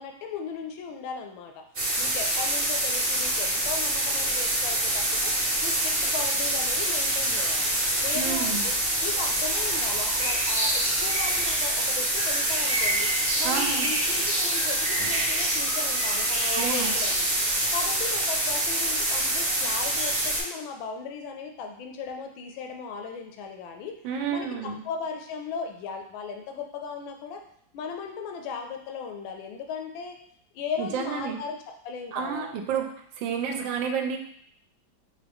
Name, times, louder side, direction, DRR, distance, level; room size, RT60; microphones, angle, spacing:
voice 1, 0.0-1.6 2.0-5.3 5.6-7.7 8.0-13.1 13.4-17.3 17.7-24.0 24.3-27.4 27.7-30.2 30.5-31.6 31.8-32.6, left 5 dB, 90° left, 4 dB, 1.4 m, -37 dB
sound 1, 1.7-20.4, right 1 dB, 35° right, 0.7 m, -25 dB
voice 2, 8.1-8.7 13.4-13.9 16.5-16.9 24.0-24.8 30.8-31.4 32.1-32.9 33.2-34.2, right 7 dB, 80° right, 4 dB, 1.3 m, -30 dB
4.9 x 2.5 x 3.5 m, 0.65 s
omnidirectional pair, 2.1 m